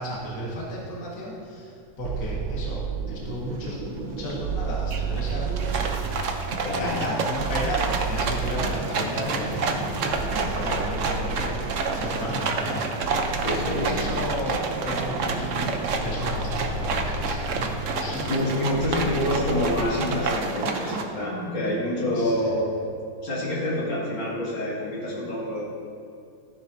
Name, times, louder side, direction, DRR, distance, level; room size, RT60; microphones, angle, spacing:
voice 1, 0.0-12.9 13.2-18.5 22.1-22.3, left 1 dB, 50° left, -5 dB, 2.2 m, -34 dB
sound 1, 2.0-19.8, right 4 dB, 90° right, 1.6 m, -33 dB
sound 2, 3.7-3.8 4.1-4.5 4.9-21.0, right 4 dB, 55° right, 0.9 m, -29 dB
voice 2, 6.6-7.1 13.4-13.9 18.2-22.7 23.2-25.6, left 1 dB, 80° left, -6 dB, 3.0 m, -27 dB
14.0 x 10.0 x 2.7 m, 2.3 s
omnidirectional pair, 2.1 m